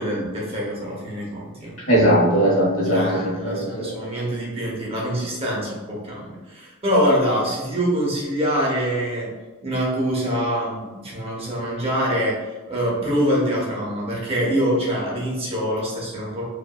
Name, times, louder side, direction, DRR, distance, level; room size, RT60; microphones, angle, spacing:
voice 1, 0.0-1.8 2.9-9.3 9.6-16.4, equal, 25° right, -4 dB, 0.7 m, -24 dB
voice 2, 1.9-3.9, equal, 75° left, -5 dB, 1.1 m, -19 dB
2.8 x 2.5 x 2.3 m, 1.2 s
head